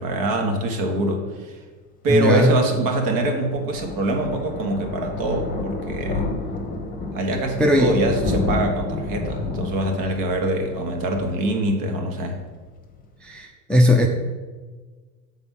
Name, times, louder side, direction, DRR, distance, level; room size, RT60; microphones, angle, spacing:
voice 1, 0.0-1.6 2.0-6.2 7.1-12.4, right 1 dB, 50° right, 3 dB, 1.5 m, -24 dB
voice 2, 2.1-2.5 7.6-8.0 13.2-14.1, left 1 dB, ahead, 2 dB, 0.4 m, -18 dB
Thunder, 2.7-12.1 12.5-12.7 13.0-13.1 13.3-13.4, left 3 dB, 20° left, 1.1 m, -30 dB
6.8 x 4.1 x 5.5 m, 1.4 s
supercardioid pair, 105°, 42 cm